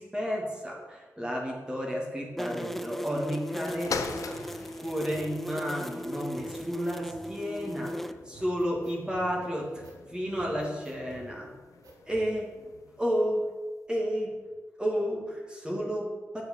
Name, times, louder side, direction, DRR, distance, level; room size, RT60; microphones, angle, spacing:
voice 1, 0.0-9.8 10.1-11.5 12.1-12.6 13.0-13.5 13.9-14.4 14.8-16.4, equal, 15° right, -2 dB, 2.5 m, -32 dB
sound 1, 2.4-8.1, equal, 5° left, 0.5 m, -37 dB
sound 2, 3.6-13.2 13.9-14.0, left 5 dB, 85° left, 0.8 m, -43 dB
sound 3, 4.3-5.3 5.8-5.9 6.3-7.3 7.8-8.0 8.3-9.3 9.8-10.0 10.3-11.3 11.8-12.3, right 2 dB, 90° right, 2.0 m, -51 dB
8.8 x 6.7 x 7.1 m, 1.3 s
cardioid pair, 75°, 6 cm